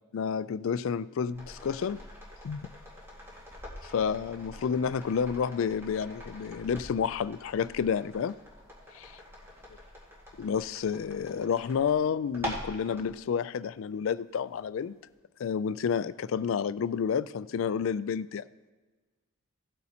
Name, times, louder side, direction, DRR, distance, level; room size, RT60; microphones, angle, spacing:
voice 1, 0.1-2.0 2.4-2.6 3.8-8.4 8.9-9.2 10.4-15.0 15.4-18.4, left 7 dB, 65° left, 16 dB, 0.3 m, -30 dB
sound 1, 1.3-13.1 14.6-14.7, equal, 10° right, 1.9 m, -45 dB
17.0 x 8.2 x 2.9 m, 1.3 s
head